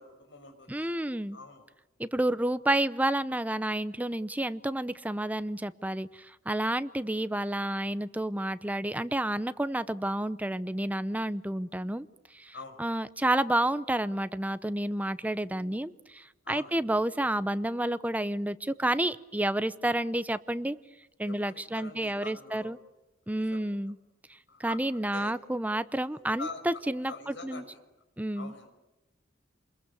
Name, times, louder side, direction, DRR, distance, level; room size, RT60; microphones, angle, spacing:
voice 1, 0.0-1.0 1.3-1.6 12.5-12.8 16.4-16.7 21.2-22.7 23.3-23.7 24.5-24.8 25.1-25.3 26.1-26.6 27.1-27.8 28.3-28.7, left 3 dB, 65° left, 5 dB, 5.9 m, -44 dB
voice 2, 0.7-1.4 2.0-12.1 12.3-12.5 12.8-20.8 21.2-22.8 23.3-24.0 24.6-27.6 28.2-28.5, right 1 dB, 10° right, 14 dB, 0.8 m, -30 dB
28.5 x 22.0 x 7.0 m, 1.0 s
head